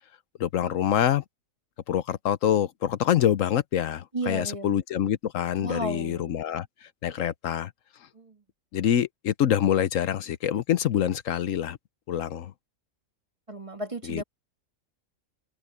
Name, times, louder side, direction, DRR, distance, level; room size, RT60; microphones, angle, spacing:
voice 1, 0.4-1.2 1.9-7.7 8.7-11.8 12.1-12.5 14.1-14.2, left 10 dB, 75° left, 1.1 m, -26 dB
voice 2, 4.1-4.8 5.6-6.5 8.1-8.4 13.5-14.2, right 1 dB, 25° right, 2.1 m, -34 dB
omnidirectional pair, 1.4 m